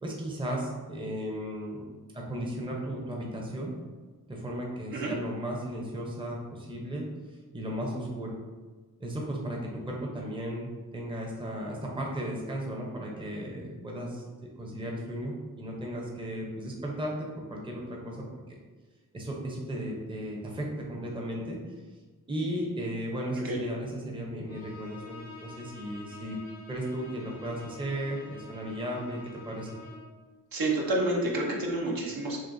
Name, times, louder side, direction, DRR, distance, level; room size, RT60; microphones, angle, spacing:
voice 1, 0.0-1.8 2.1-3.7 4.3-7.1 7.5-8.4 9.0-14.2 14.6-18.6 19.1-21.6 22.3-26.4 26.7-29.2 29.5-29.8, equal, 15° right, -2 dB, 0.6 m, -35 dB
Bowed string instrument, 24.5-30.2, left 3 dB, 90° left, 0.9 m, -48 dB
voice 2, 30.5-32.4, right 2 dB, 70° right, -2 dB, 0.9 m, -29 dB
6.1 x 2.1 x 2.6 m, 1.3 s
wide cardioid pair, 85°, 36 cm